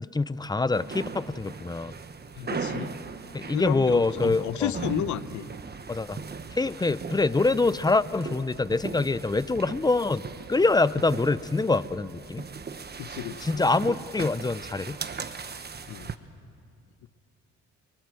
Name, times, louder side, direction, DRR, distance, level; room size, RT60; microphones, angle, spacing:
voice 1, 0.1-1.9 3.3-4.7 5.9-6.2 6.6-10.2 10.5-12.4 13.4-15.0, left 3 dB, 15° left, 16 dB, 0.7 m, -25 dB
sound 1, 0.7-16.2, right 5 dB, 35° right, 1.2 m, -38 dB
voice 2, 2.4-3.0 3.5-5.5 13.0-13.6 15.9-16.1, left 12 dB, 75° left, 14 dB, 1.0 m, -32 dB
28.5 x 23.5 x 7.8 m, 2.3 s
cardioid pair, 90°, 30 cm